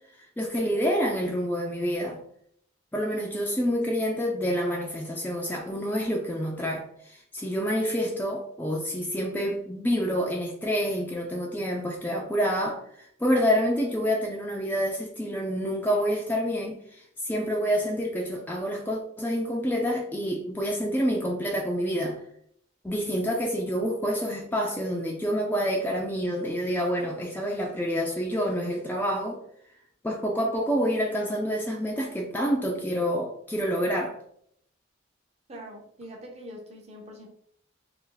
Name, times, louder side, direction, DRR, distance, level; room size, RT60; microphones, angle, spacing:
voice 1, 0.4-2.2 2.9-22.2 22.8-29.4 30.0-34.2, equal, 10° left, -1 dB, 0.3 m, -28 dB
voice 2, 35.5-37.3, equal, 35° right, 1 dB, 0.6 m, -43 dB
2.6 x 2.4 x 3.7 m, 0.68 s
head